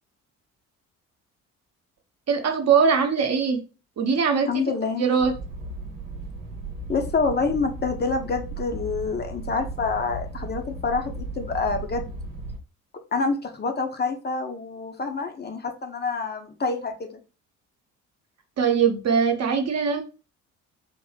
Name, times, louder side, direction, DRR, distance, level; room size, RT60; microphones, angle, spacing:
voice 1, 2.3-3.6 4.0-4.6 5.0-5.3 18.6-20.0, right 6 dB, 40° right, 1.0 m, -21 dB
voice 2, 4.5-5.0 6.9-12.1 13.1-17.2, left 4 dB, 25° left, 0.8 m, -27 dB
sound 1, 5.2-12.6, right 2 dB, 70° right, 1.0 m, -36 dB
3.7 x 3.0 x 3.2 m
figure-of-eight pair, 45°, 41 cm